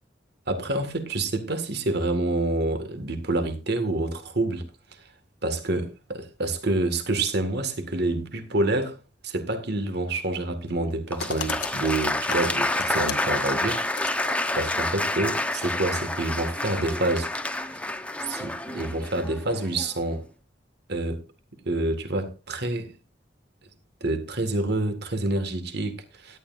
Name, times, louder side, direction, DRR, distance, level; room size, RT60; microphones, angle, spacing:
voice 1, 0.5-4.7 5.0-5.1 5.4-9.0 9.2-17.3 17.7-17.8 18.3-20.3 20.9-21.2 21.7-22.9 24.0-26.4, right 2 dB, 60° right, 2.0 m, -28 dB
sound 1, 11.1-14.5 15.7-15.8 16.9-17.0, left 6 dB, 90° left, 1.5 m, -37 dB
Applause, 11.1-20.0, left 1 dB, 5° left, 0.9 m, -29 dB
17.0 x 11.5 x 2.6 m
head